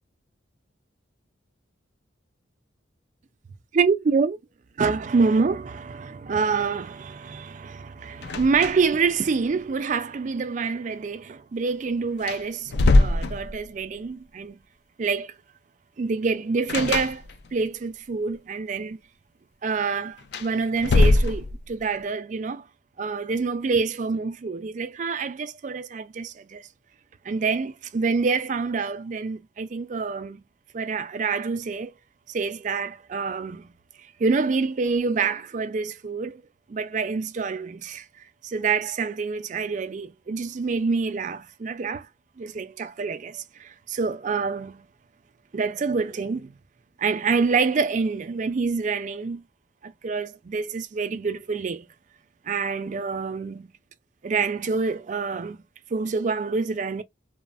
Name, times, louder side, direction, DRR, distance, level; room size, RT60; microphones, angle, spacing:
voice 1, 3.7-4.4 4.8-14.6 15.0-15.3 16.0-17.2 17.5-19.0 19.6-22.7 23.0-26.7 27.2-30.4 30.7-31.9 32.3-33.7 34.0-36.4 36.7-38.1 38.4-42.1 42.4-44.9 45.5-46.5 47.0-49.4 49.8-51.9 52.4-53.7 54.2-55.6 55.9-57.0, right 4 dB, 40° right, 0.4 m, -26 dB
sound 1, 8.2-9.1 9.3-9.4 11.7-11.8 12.2-13.9 16.7-17.7 20.2-21.8, left 2 dB, 60° left, 0.4 m, -22 dB
3.0 x 2.0 x 2.4 m
head